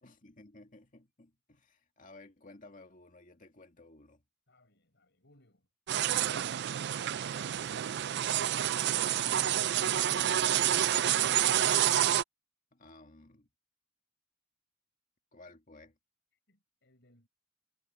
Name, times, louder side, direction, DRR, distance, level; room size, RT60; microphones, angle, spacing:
voice 1, 0.0-4.2 7.6-8.0 12.7-13.5 15.3-16.0, left 2 dB, 40° left, 2.2 m, -56 dB
voice 2, 4.5-5.7 7.3-10.6 16.5-17.3, left 2 dB, 60° left, 5.8 m, -63 dB
sound 1, 5.9-12.2, right 11 dB, 55° right, 0.4 m, -28 dB
head